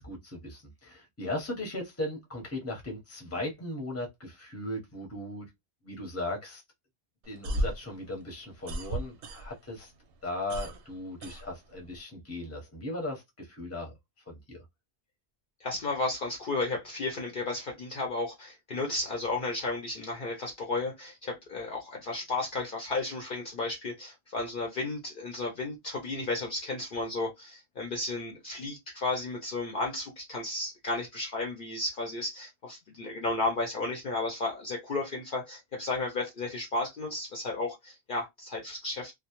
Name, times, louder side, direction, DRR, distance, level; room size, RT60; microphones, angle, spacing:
voice 1, 0.0-5.5 5.8-6.6 7.3-9.9 10.2-13.9 14.3-14.6, left 1 dB, 15° left, 0.7 m, -37 dB
sound 1, 7.2-9.8 10.1-12.0, right 1 dB, 65° right, 0.7 m, -35 dB
voice 2, 15.6-39.1, left 2 dB, 55° left, 0.7 m, -33 dB
2.2 x 2.0 x 2.8 m
omnidirectional pair, 1.1 m